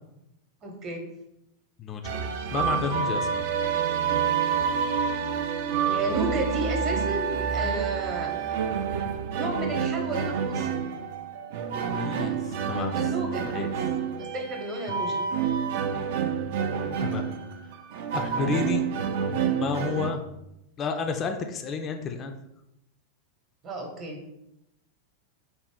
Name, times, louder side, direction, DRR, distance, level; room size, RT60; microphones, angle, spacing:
voice 1, 0.6-1.1 5.9-8.5 9.3-10.7 12.9-13.4 14.2-15.2 23.6-24.2, right 2 dB, 35° right, 2 dB, 0.8 m, -32 dB
voice 2, 1.8-2.2 2.5-3.4 11.9-13.1 13.4-13.7 14.9-15.0 17.0-17.2 18.1-18.8 19.2-20.2 20.8-22.3, left 5 dB, 30° left, 5 dB, 0.3 m, -31 dB
sound 1, 2.0-20.1, right 7 dB, 50° right, 0.3 m, -28 dB
3.9 x 2.1 x 3.5 m, 0.84 s
figure-of-eight pair, 90°, 0 cm